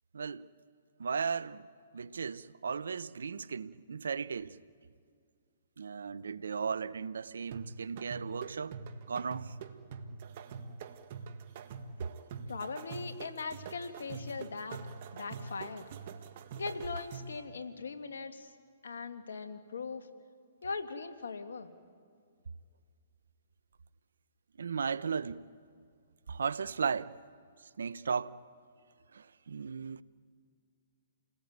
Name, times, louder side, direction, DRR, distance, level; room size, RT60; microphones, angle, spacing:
voice 1, 0.1-0.5 1.0-1.7 1.9-4.6 5.8-8.8 9.1-9.6 24.6-25.5 26.3-27.2 27.6-28.4 29.1-30.0, right 6 dB, 80° right, 0.8 m, -36 dB
sound 1, 7.5-17.4, right 5 dB, 50° right, 1.7 m, -45 dB
voice 2, 12.5-14.8 15.1-15.9 16.5-18.5 18.8-20.1 20.6-21.7, left 4 dB, 80° left, 2.0 m, -40 dB
29.0 x 19.0 x 9.5 m
hypercardioid pair, 130°, 0 cm